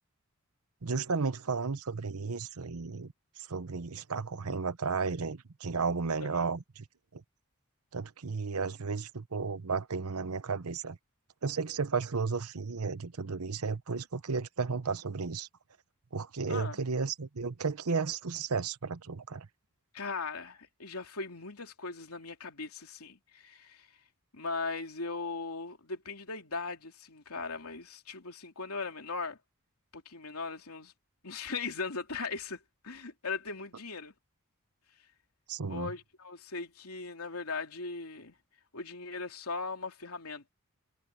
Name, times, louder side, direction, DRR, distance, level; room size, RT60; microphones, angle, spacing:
voice 1, 0.8-6.8 7.1-7.2 7.9-11.0 11.4-15.5 16.1-19.5 35.5-35.9, right 4 dB, 90° right, 0.9 m, -33 dB
voice 2, 16.5-16.8 19.9-23.9 24.3-29.4 29.9-30.9 31.2-34.1 35.7-38.4 38.7-40.5, left 4 dB, 80° left, 3.0 m, -39 dB
head